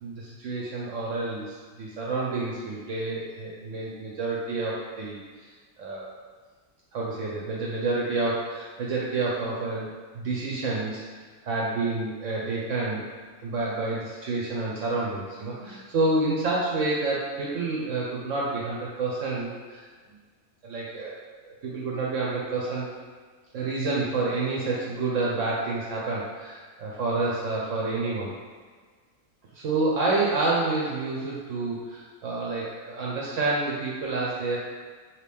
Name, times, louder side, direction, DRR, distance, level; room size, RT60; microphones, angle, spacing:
voice 1, 0.0-5.5 5.8-6.1 6.9-9.9 10.1-11.0 11.4-13.0 13.4-19.8 20.6-22.9 23.5-28.3 29.5-34.6, right 3 dB, 65° right, -5 dB, 0.9 m, -29 dB
3.1 x 2.7 x 3.3 m, 1.5 s
omnidirectional pair, 1.5 m